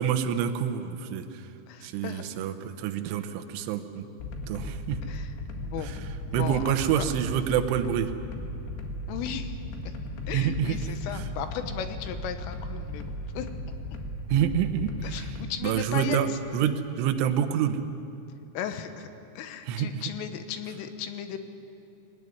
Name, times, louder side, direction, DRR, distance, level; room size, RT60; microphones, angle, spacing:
voice 1, 0.0-1.4 1.8-4.1 4.5-5.0 5.8-6.0 6.3-8.1 10.3-11.2 14.3-15.4 15.6-16.3 16.5-17.8 19.7-20.0, right 9 dB, 80° right, 6 dB, 3.4 m, -27 dB
voice 2, 1.7-2.2 5.1-5.3 5.6-5.9 6.3-7.1 9.1-9.6 9.9-10.0 10.3-13.5 15.0-16.4 18.6-19.1 19.4-21.4, left 8 dB, 85° left, 8 dB, 3.7 m, -36 dB
sound 1, 4.2-15.4, left 1 dB, 70° left, 4.0 m, -36 dB
21.5 x 19.0 x 9.6 m, 2.9 s
omnidirectional pair, 5.7 m